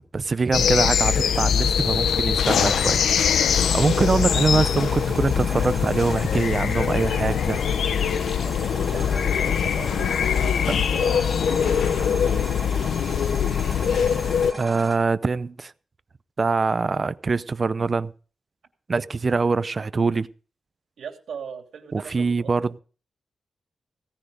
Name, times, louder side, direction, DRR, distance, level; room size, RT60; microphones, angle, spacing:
voice 1, 0.1-3.0 3.4-7.6 14.6-15.7 16.4-18.1 18.9-20.3 21.9-22.8, right 4 dB, 35° right, 0.6 m, -24 dB
sound 1, 0.5-14.5, left 7 dB, 90° left, 0.7 m, -22 dB
sound 2, 3.6-15.0, right 1 dB, 5° left, 3.1 m, -38 dB
voice 2, 8.5-12.1 21.0-22.5, right 7 dB, 75° right, 2.9 m, -40 dB
17.0 x 10.0 x 5.1 m
wide cardioid pair, 150°, 0 cm